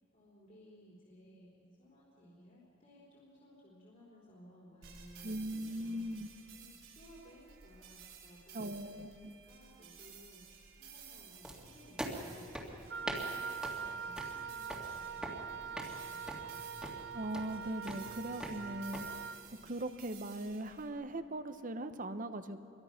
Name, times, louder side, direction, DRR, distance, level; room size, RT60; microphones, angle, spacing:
voice 1, 0.1-6.1 6.5-16.7, equal, 40° left, -5 dB, 3.6 m, -59 dB
sound 1, 4.8-20.9, right 7 dB, 90° right, 5.0 m, -56 dB
voice 2, 5.2-6.3 8.5-9.3 17.1-19.3 19.6-22.6, right 1 dB, 45° right, 10 dB, 1.0 m, -40 dB
sound 2, 11.4-19.0, equal, 5° right, 2.1 m, -45 dB
Wind instrument woodwind instrument, 12.9-19.4, right 6 dB, 65° right, 0.5 m, -43 dB
26.5 x 22.5 x 5.9 m, 2.7 s
head